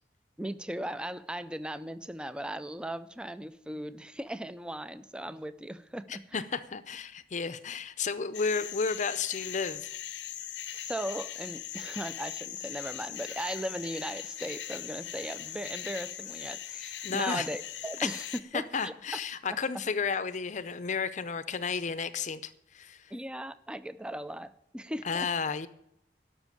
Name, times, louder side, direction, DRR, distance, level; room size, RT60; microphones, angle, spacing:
voice 1, 0.4-6.5 10.7-19.2 19.5-19.6 23.1-25.3, right 1 dB, 5° right, 14 dB, 0.4 m, -38 dB
voice 2, 6.1-10.0 17.0-17.5 18.0-18.1 18.5-23.1 25.0-25.7, left 5 dB, 45° left, 13 dB, 0.6 m, -32 dB
sound 1, 8.3-18.4, left 11 dB, 90° left, 0.7 m, -40 dB
12.5 x 6.2 x 9.1 m, 0.76 s
head